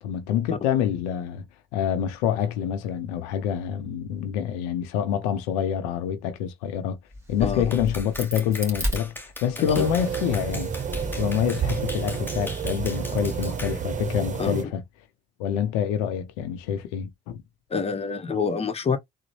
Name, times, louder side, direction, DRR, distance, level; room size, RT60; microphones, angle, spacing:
voice 1, 0.0-1.4 1.7-7.0 7.3-10.7 11.2-14.8 15.4-17.4, left 9 dB, 90° left, 0.5 m, -26 dB
Crack, 7.1-9.8 10.3-11.9, equal, 15° right, 1.9 m, -34 dB
voice 2, 7.4-7.7 9.7-9.9 14.4-14.6 17.7-19.0, left 5 dB, 30° left, 0.8 m, -26 dB
Clapping, 7.7-13.8, left 1 dB, 10° left, 1.0 m, -40 dB
sound 1, 9.6-14.6, right 7 dB, 35° right, 0.8 m, -30 dB
3.8 x 2.0 x 3.0 m
supercardioid pair, 65°, 21 cm